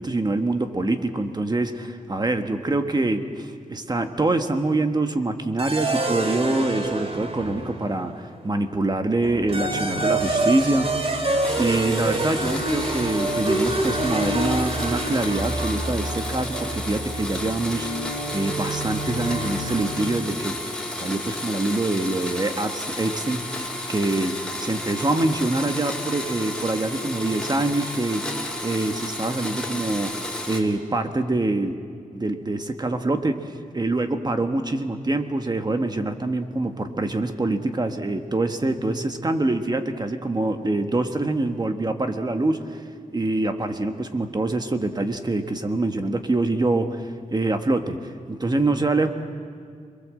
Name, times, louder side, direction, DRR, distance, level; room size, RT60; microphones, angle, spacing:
voice 1, 0.0-11.2 11.6-20.6 21.0-30.2 30.5-31.8 32.1-42.8 43.1-49.1, right 2 dB, 30° right, 6 dB, 1.5 m, -25 dB
sound 1, 5.6-8.2 9.2-20.4, right 2 dB, 45° right, 2.3 m, -27 dB
Domestic sounds home sounds, 11.4-30.6, left 1 dB, 5° left, 4.3 m, -32 dB
27.5 x 22.0 x 7.7 m, 2.3 s
wide cardioid pair, 110°, 15 cm